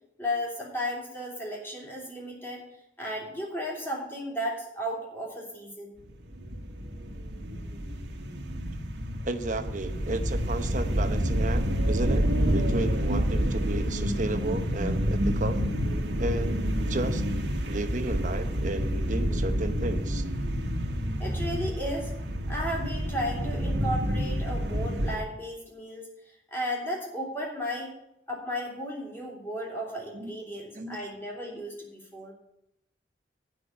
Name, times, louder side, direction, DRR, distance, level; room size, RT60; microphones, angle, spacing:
voice 1, 0.2-2.6 3.0-5.9 21.2-22.1 22.5-26.1 26.5-27.9 28.3-32.3, equal, 15° left, -3 dB, 3.1 m, -34 dB
sound 1, 6.1-25.2, equal, 85° right, 1.5 m, -28 dB
voice 2, 9.2-15.6 16.2-17.2 17.6-20.2 30.1-30.4 30.7-31.0, right 2 dB, 45° right, 8 dB, 0.9 m, -33 dB
9.5 x 6.1 x 8.4 m, 0.82 s
head